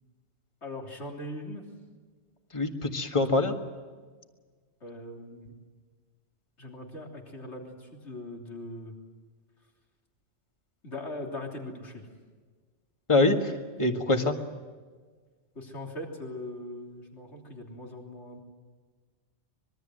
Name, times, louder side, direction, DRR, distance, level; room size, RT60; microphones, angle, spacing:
voice 1, 0.6-1.6 4.8-5.5 6.6-8.9 10.8-12.1 15.6-18.4, left 1 dB, 75° left, 1 dB, 3.7 m, -40 dB
voice 2, 2.5-3.5 13.1-13.5 13.8-14.3, left 2 dB, 25° left, 5 dB, 1.9 m, -24 dB
25.0 x 22.0 x 7.9 m, 1.5 s
omnidirectional pair, 1.2 m